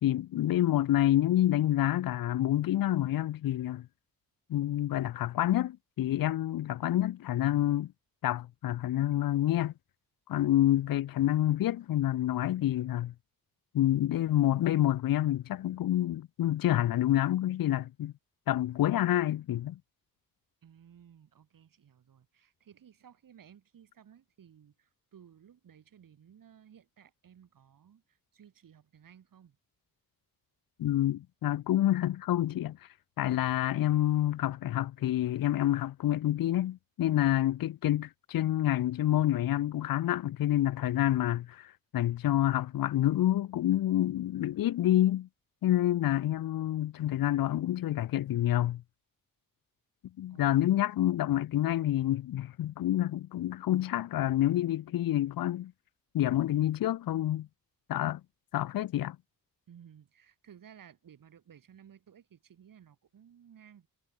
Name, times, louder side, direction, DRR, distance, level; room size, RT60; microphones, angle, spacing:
voice 1, 0.0-3.9 4.5-7.9 8.2-9.7 10.3-13.1 13.7-18.1 18.5-19.8 30.8-32.9 33.2-45.3 45.6-48.8 50.2-55.7 56.1-57.5 57.9-58.2 58.5-59.2, left 13 dB, 75° left, 0.7 m, -28 dB
voice 2, 20.6-29.6 50.3-50.6 59.7-63.9, right 8 dB, 65° right, 7.2 m, -57 dB
wide cardioid pair, 165°, 35 cm